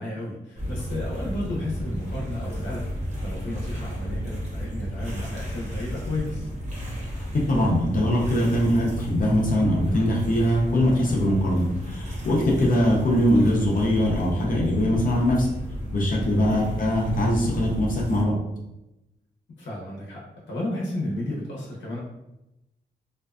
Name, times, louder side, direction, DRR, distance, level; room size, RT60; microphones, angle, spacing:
voice 1, 0.0-6.5 16.5-16.8 19.6-22.0, left 1 dB, 85° left, -4 dB, 0.8 m, -33 dB
sound 1, 0.6-18.2, equal, 40° right, 0.7 m, -33 dB
voice 2, 7.5-15.5 15.9-18.3, equal, 50° left, -3 dB, 0.6 m, -22 dB
2.5 x 2.3 x 2.3 m, 0.90 s
wide cardioid pair, 130°, 18 cm